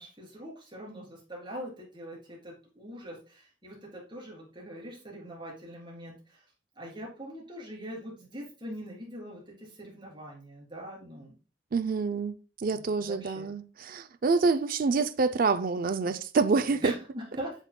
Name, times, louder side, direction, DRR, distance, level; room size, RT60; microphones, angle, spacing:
voice 1, 0.0-6.4 6.8-11.4 12.7-13.5 16.8-17.6, equal, 25° right, 3.3 m, -42 dB
voice 2, 11.7-12.3 12.6-16.9, right 4 dB, 50° right, 0.4 m, -27 dB
8.0 x 5.8 x 2.2 m
head